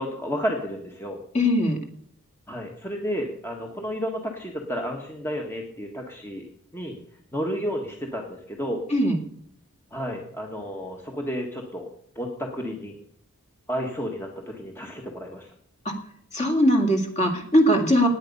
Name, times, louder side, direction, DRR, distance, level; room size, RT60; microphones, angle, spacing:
voice 1, 0.0-1.2 2.5-6.4 6.7-7.0 7.3-8.8 9.9-11.9 12.1-13.0 13.7-15.5 18.0-18.1, equal, 10° left, 1 dB, 1.4 m, -31 dB
voice 2, 1.3-1.8 8.9-9.2 15.8-15.9 16.3-18.1, equal, 30° left, 3 dB, 2.2 m, -20 dB
16.5 x 9.8 x 5.5 m, 0.66 s
head